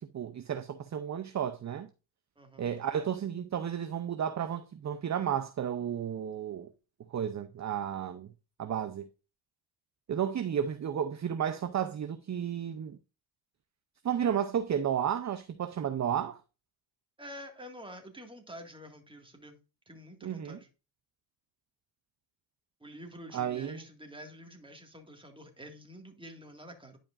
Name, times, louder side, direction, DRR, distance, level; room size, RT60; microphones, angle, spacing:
voice 1, 0.0-1.9 2.6-6.7 7.1-8.3 8.6-9.1 10.1-13.0 14.0-16.4 20.2-20.6 23.3-23.8, right 9 dB, 35° right, 0.6 m, -32 dB
voice 2, 2.4-2.7 17.2-19.6 19.9-20.7 22.8-27.0, equal, 10° right, 1.9 m, -48 dB
10.5 x 5.1 x 2.5 m
cardioid pair, 85°, 46 cm